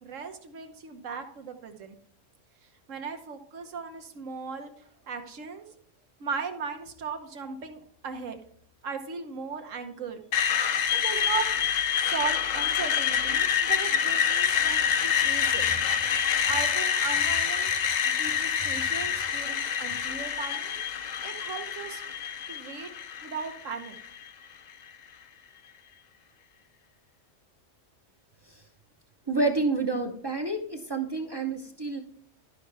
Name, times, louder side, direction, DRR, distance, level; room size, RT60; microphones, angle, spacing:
voice 1, 0.0-1.9 2.6-5.7 6.2-8.4 8.8-10.2 10.9-11.5 11.9-16.1 16.4-17.7 18.0-20.8 21.2-22.0 22.5-22.9 23.2-23.9, right 5 dB, 75° right, 6 dB, 1.4 m, -37 dB
Screech, 10.3-24.3, left 8 dB, 60° left, 0.4 m, -27 dB
voice 2, 29.3-32.0, right 3 dB, 25° right, 3 dB, 0.7 m, -29 dB
12.0 x 5.5 x 3.3 m, 0.64 s
omnidirectional pair, 1.3 m